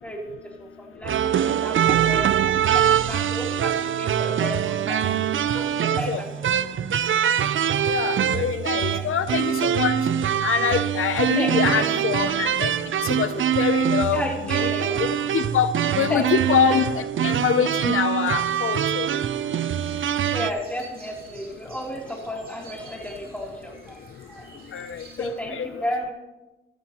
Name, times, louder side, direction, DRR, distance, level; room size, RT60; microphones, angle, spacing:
voice 1, 0.0-5.1 5.5-6.3 8.7-9.1 11.3-12.0 14.1-15.3 16.1-16.8 20.3-24.8 25.2-26.1, equal, 5° left, -1 dB, 3.1 m, -33 dB
sound 1, 1.0-20.5, right 9 dB, 75° right, 0.4 m, -23 dB
voice 2, 7.9-9.9 10.4-12.7 13.0-13.3 13.6-14.2 14.5-14.7 15.3-15.7 16.0-19.1 24.7-25.8, left 8 dB, 90° left, 11 dB, 0.5 m, -25 dB
sound 2, 19.8-25.3, right 3 dB, 45° right, 3.0 m, -49 dB
13.5 x 13.5 x 2.9 m, 1.1 s
cardioid pair, 55°, 21 cm